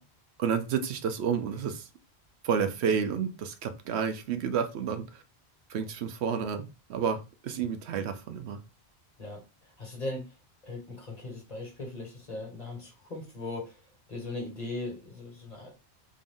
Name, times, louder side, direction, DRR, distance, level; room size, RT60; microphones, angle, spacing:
voice 1, 0.4-1.9 2.4-5.2 5.7-8.6, right 7 dB, 80° right, 0.9 m, -30 dB
voice 2, 9.8-10.2 10.6-13.8 14.1-15.7, left 2 dB, 35° left, 1.5 m, -38 dB
3.7 x 2.5 x 3.6 m
omnidirectional pair, 1.1 m